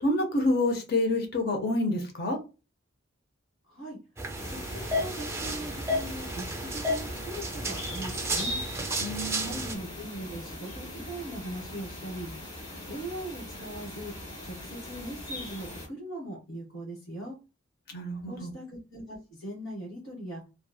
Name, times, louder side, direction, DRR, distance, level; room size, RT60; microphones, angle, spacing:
voice 1, 0.0-2.4 9.0-9.5 17.9-18.5, left 1 dB, 50° left, 0.7 m, -28 dB
voice 2, 3.7-4.0 4.5-8.6 9.3-12.3 12.8-14.1 14.4-17.4 18.2-20.4, right 1 dB, 65° left, 1.4 m, -40 dB
sound 1, 4.2-9.7, equal, 15° right, 0.3 m, -32 dB
sound 2, 4.3-15.9, left 1 dB, 25° left, 1.2 m, -40 dB
3.0 x 2.3 x 2.2 m
head